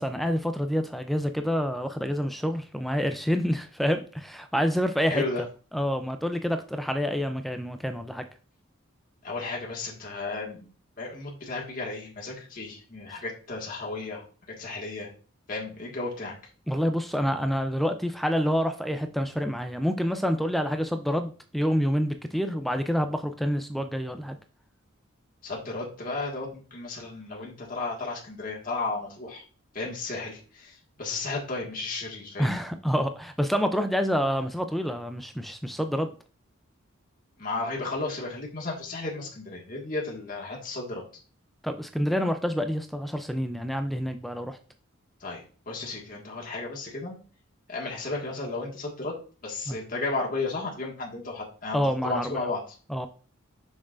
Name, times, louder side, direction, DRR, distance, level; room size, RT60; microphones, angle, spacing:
voice 1, 0.0-5.2 5.7-8.3 13.1-13.2 16.7-24.4 32.4-36.1 41.6-44.6 49.7-49.8 51.7-52.5 52.9-53.1, equal, ahead, 7 dB, 0.4 m, -27 dB
voice 2, 5.1-5.4 9.2-10.7 11.0-14.2 14.6-15.1 15.5-16.3 25.4-29.4 29.7-32.5 37.4-41.0 45.2-47.2 47.7-49.1 49.4-51.8 52.0-52.6, left 3 dB, 40° left, -3 dB, 1.7 m, -33 dB
6.3 x 6.1 x 2.5 m, 0.38 s
head